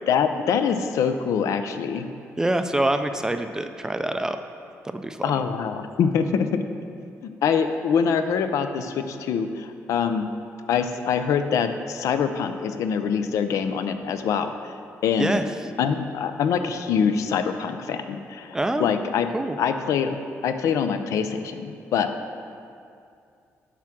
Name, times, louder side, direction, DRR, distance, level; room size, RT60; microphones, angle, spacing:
voice 1, 0.1-2.1 5.2-6.5 7.2-10.3 10.7-14.7 15.0-15.4 15.8-19.3 19.6-20.2 20.4-22.1, left 7 dB, 80° left, 8 dB, 0.5 m, -24 dB
voice 2, 2.4-4.4 4.8-5.4 15.2-15.5 18.5-18.9 19.3-19.6, right 1 dB, 10° right, 8 dB, 0.3 m, -25 dB
10.0 x 3.6 x 6.1 m, 2.4 s
cardioid pair, 135°, 5 cm